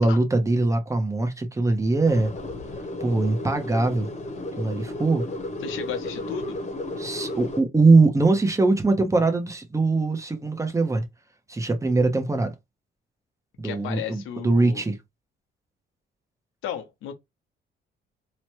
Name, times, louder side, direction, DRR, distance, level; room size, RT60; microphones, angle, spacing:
voice 1, 0.0-2.3 3.0-4.1 4.6-5.2 7.0-11.0 11.5-12.5 13.6-15.0, right 3 dB, 15° right, 0.8 m, -22 dB
sound 1, 2.0-7.6, left 1 dB, 35° left, 1.0 m, -34 dB
voice 2, 5.6-6.6 13.6-14.8 16.6-17.1, left 8 dB, 90° left, 0.8 m, -34 dB
3.0 x 2.2 x 3.0 m
cardioid pair, 90°, 20 cm